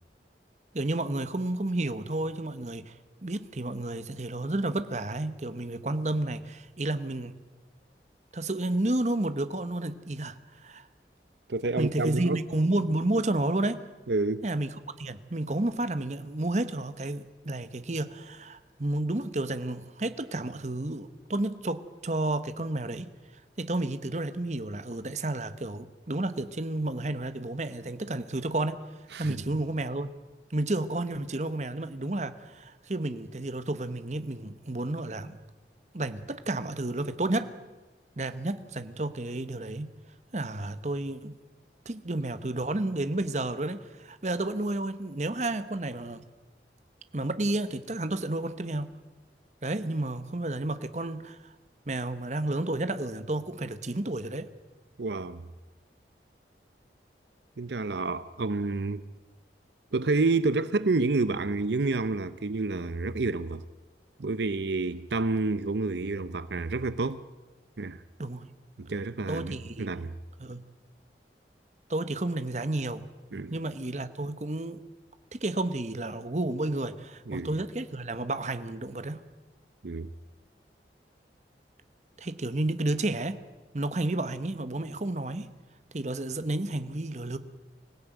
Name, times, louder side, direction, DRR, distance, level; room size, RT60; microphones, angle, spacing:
voice 1, 0.7-2.9 3.2-7.3 8.3-10.9 11.8-13.8 14.4-14.7 15.0-23.1 23.6-28.8 29.2-30.1 30.5-35.4 35.9-37.5 38.2-39.9 40.3-41.4 41.8-46.2 47.1-49.0 49.6-51.5 51.9-54.5 68.2-68.5 69.3-70.0 70.4-70.6 71.9-73.0 73.5-74.8 75.3-79.2 82.2-83.4 83.7-85.5 85.9-87.4, right 2 dB, 40° right, 12 dB, 1.1 m, -31 dB
voice 2, 11.5-12.4 14.1-14.5 29.1-29.4 55.0-55.4 57.6-59.0 59.9-63.6 64.2-67.2 67.8-68.0 68.8-70.2 73.3-73.6 77.3-77.6 79.8-80.1, right 3 dB, 75° right, 14 dB, 0.7 m, -29 dB
24.5 x 16.5 x 9.2 m, 1.2 s
head